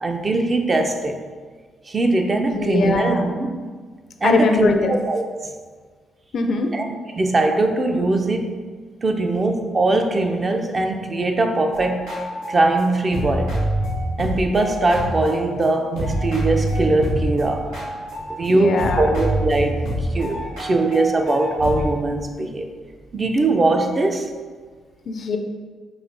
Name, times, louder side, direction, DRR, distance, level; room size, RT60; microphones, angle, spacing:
voice 1, 0.0-1.2 1.9-3.6 4.2-5.5 6.7-6.9 7.1-8.6 9.0-12.1 12.5-13.5 14.2-17.7 18.4-22.7 23.1-24.3, right 2 dB, 40° right, 4 dB, 0.4 m, -21 dB
voice 2, 2.4-3.2 4.2-4.9 6.3-6.7 18.5-19.1 25.1-25.4, left 4 dB, 60° left, 5 dB, 0.3 m, -21 dB
sound 1, 11.7-15.6 15.9-18.5 18.8-21.9, equal, 90° right, 0.9 m, -26 dB
4.9 x 2.5 x 2.6 m, 1.5 s
supercardioid pair, 55°, 0 cm